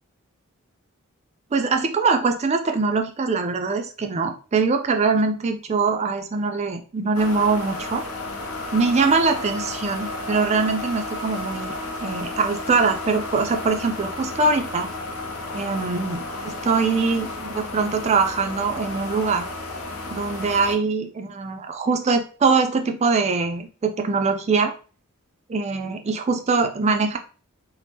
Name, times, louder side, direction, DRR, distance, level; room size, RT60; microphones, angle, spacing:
voice 1, 1.5-8.0 8.7-11.7 12.0-14.9 15.5-19.4 20.1-24.7 25.5-27.2, right 4 dB, 30° right, 6 dB, 0.4 m, -22 dB
sound 1, 7.1-20.7, left 2 dB, 75° left, 0.6 m, -33 dB
2.8 x 2.0 x 3.3 m, 0.37 s
head